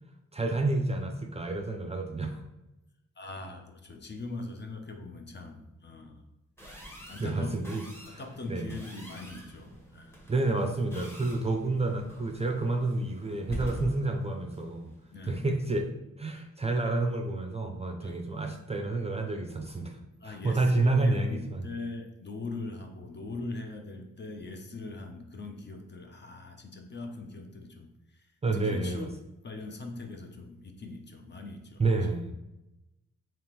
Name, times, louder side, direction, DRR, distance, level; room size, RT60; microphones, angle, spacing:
voice 1, 0.3-2.4 7.2-7.8 8.1-8.2 8.5-8.7 10.3-14.9 15.3-15.9 16.2-20.0 20.2-21.7 28.4-29.1 31.8-32.3, right 2 dB, 20° right, 3 dB, 0.4 m, -29 dB
voice 2, 3.2-6.2 7.1-7.7 8.0-10.1 15.1-15.4 18.0-18.2 20.2-29.1 29.4-31.8, left 3 dB, 35° left, 4 dB, 0.6 m, -41 dB
sound 1, 6.6-15.7, right 1 dB, 10° left, 1.1 m, -45 dB
3.5 x 2.9 x 3.0 m, 0.95 s
cardioid pair, 65°, 30 cm